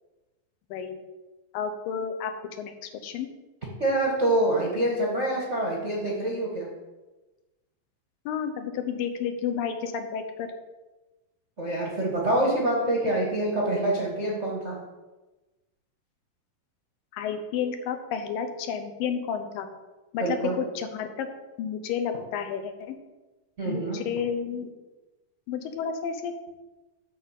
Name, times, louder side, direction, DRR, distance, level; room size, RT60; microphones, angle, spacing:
voice 1, 0.7-1.0 1.5-2.3 2.6-3.3 8.3-10.5 17.1-19.7 20.1-21.3 21.6-23.0 23.6-24.7 25.5-26.3, left 7 dB, 80° left, 7 dB, 2.5 m, -31 dB
voice 2, 3.8-6.7 11.6-14.8 20.2-20.6 23.6-24.0, right 1 dB, 50° right, -3 dB, 0.8 m, -26 dB
9.1 x 4.2 x 7.3 m, 1.1 s
omnidirectional pair, 4.0 m